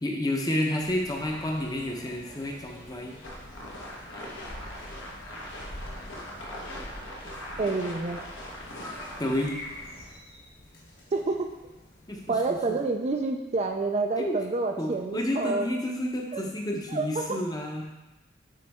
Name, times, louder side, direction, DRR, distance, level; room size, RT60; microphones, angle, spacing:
voice 1, 0.0-3.2 9.2-9.6 12.1-12.8 14.2-14.4 14.8-17.9, left 1 dB, 20° left, 1 dB, 0.7 m, -30 dB
sound 1, 0.8-12.7, left 1 dB, 50° left, 1.6 m, -47 dB
sound 2, 3.2-9.5, equal, 75° left, 1.3 m, -40 dB
voice 2, 7.6-8.2 11.1-11.5 12.3-15.7 16.3-16.4 16.9-17.4, right 3 dB, 35° right, 4 dB, 0.4 m, -28 dB
9.3 x 3.9 x 3.5 m, 1.1 s
head